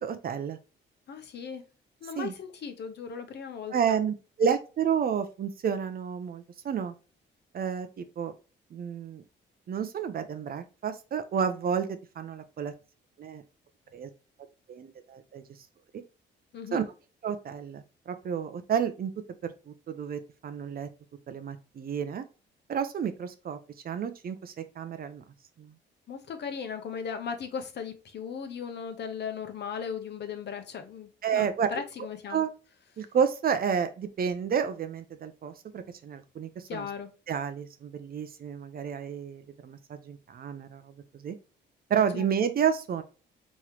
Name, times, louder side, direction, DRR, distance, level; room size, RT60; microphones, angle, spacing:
voice 1, 0.0-0.6 2.2-2.3 3.7-6.9 7.5-8.3 8.7-9.2 9.7-11.9 12.2-12.7 13.2-13.4 13.9-14.1 14.7-15.4 16.7-16.8 17.2-19.1 19.4-20.9 21.3-22.2 22.7-23.6 23.8-25.2 25.6-25.7 31.2-31.8 32.3-32.5 33.0-36.9 37.3-41.4 41.9-43.0, right 7 dB, 50° right, 0.6 m, -30 dB
voice 2, 1.1-1.7 2.0-4.0 16.5-16.8 26.1-32.4 36.7-37.1 42.1-42.5, left 6 dB, 60° left, 0.8 m, -37 dB
3.6 x 3.1 x 2.9 m
cardioid pair, 90°, 20 cm